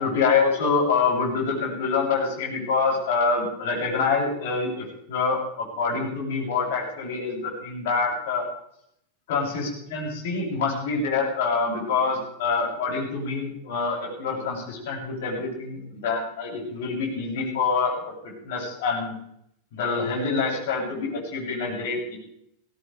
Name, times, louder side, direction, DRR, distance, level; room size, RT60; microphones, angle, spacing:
voice 1, 0.0-8.4 9.3-17.9 18.2-19.1 19.7-22.2, left 4 dB, 55° left, -2 dB, 7.3 m, -26 dB
20.0 x 17.0 x 3.4 m, 0.72 s
figure-of-eight pair, 90°, 0 cm